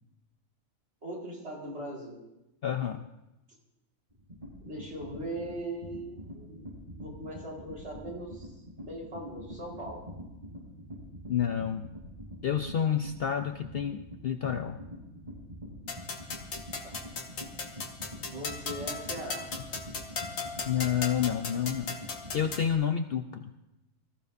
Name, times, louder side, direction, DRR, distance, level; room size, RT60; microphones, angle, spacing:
voice 1, 1.0-2.2 4.6-10.0 16.8-16.9 18.2-19.4, right 1 dB, 50° right, -4 dB, 4.5 m, -40 dB
voice 2, 2.6-3.1 11.3-11.9 12.4-14.8 20.6-22.0 22.3-23.5, left 9 dB, 55° left, 7 dB, 0.7 m, -29 dB
sound 1, 4.1-22.7, equal, 30° right, 6.7 m, -45 dB
sound 2, 15.9-22.7, left 4 dB, 75° left, 1.8 m, -38 dB
24.0 x 14.5 x 2.6 m, 0.96 s
omnidirectional pair, 1.4 m